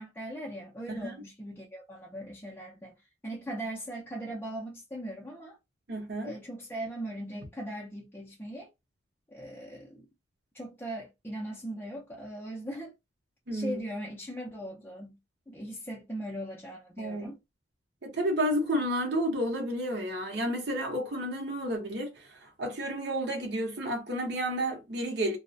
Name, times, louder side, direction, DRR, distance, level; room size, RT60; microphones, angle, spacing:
voice 1, 0.0-3.0 3.2-5.6 6.2-8.7 9.3-10.0 10.5-12.9 13.5-15.2 15.5-17.4, right 1 dB, 10° left, 0.4 m, -39 dB
voice 2, 5.9-6.3 13.5-13.8 17.0-17.3 18.0-25.4, equal, 60° right, 0.7 m, -31 dB
2.3 x 2.0 x 2.5 m
head